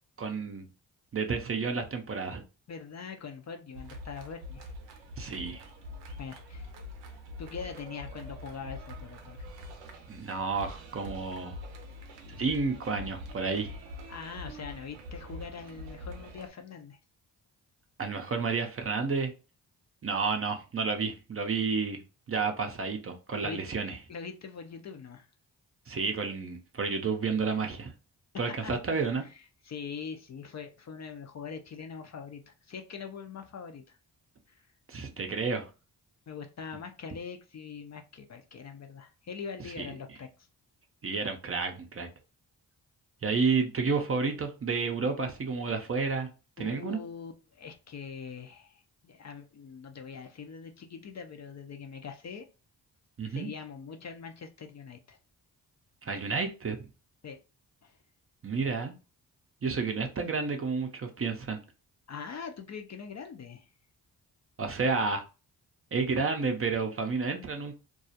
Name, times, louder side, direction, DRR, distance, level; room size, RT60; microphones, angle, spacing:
voice 1, 0.2-0.7 1.1-2.4 5.2-5.6 10.1-11.6 12.3-13.8 18.0-19.3 20.0-22.0 22.3-24.0 25.9-27.9 28.4-29.2 34.9-35.7 39.8-39.9 41.0-42.1 43.2-46.3 46.6-47.0 53.2-53.5 56.0-56.9 58.4-58.9 59.6-61.6 64.6-65.2 65.9-67.7, right 4 dB, 35° right, 5 dB, 0.5 m, -30 dB
voice 2, 2.7-4.7 6.2-6.7 7.4-9.4 14.1-17.0 23.4-23.6 24.1-25.3 28.6-28.7 29.6-34.0 34.5-34.6 36.3-40.3 46.6-52.5 53.3-55.2 57.2-57.4 57.8-58.0 59.8-59.9 62.1-63.7, left 6 dB, 40° left, 5 dB, 0.4 m, -42 dB
sound 1, 3.7-16.5, left 1 dB, 90° right, 0.6 m, -44 dB
2.3 x 2.0 x 2.7 m, 0.32 s
supercardioid pair, 45°, 43 cm